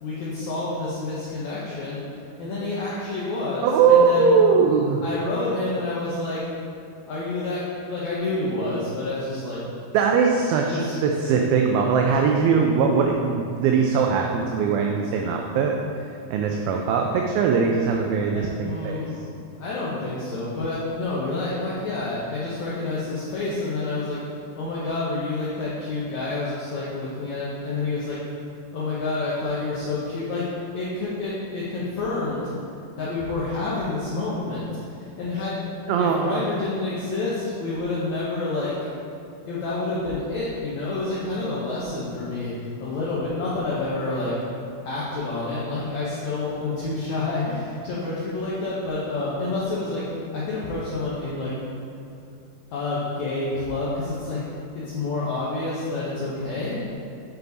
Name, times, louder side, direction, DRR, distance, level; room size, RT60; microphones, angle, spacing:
voice 1, 0.0-2.0 2.4-4.4 5.0-6.4 7.1-9.6 10.7-11.0 18.3-19.2 19.5-24.2 24.6-32.4 33.0-35.6 36.0-38.7 39.5-42.5 42.8-44.3 44.8-50.1 50.3-51.6 52.7-54.4 54.7-56.9, left 2 dB, 80° left, -8 dB, 1.7 m, -28 dB
voice 2, 3.6-5.0 9.9-19.0 35.9-36.4, right 5 dB, 80° right, 2 dB, 2.2 m, -21 dB
9.0 x 4.6 x 4.0 m, 2.6 s
omnidirectional pair, 4.5 m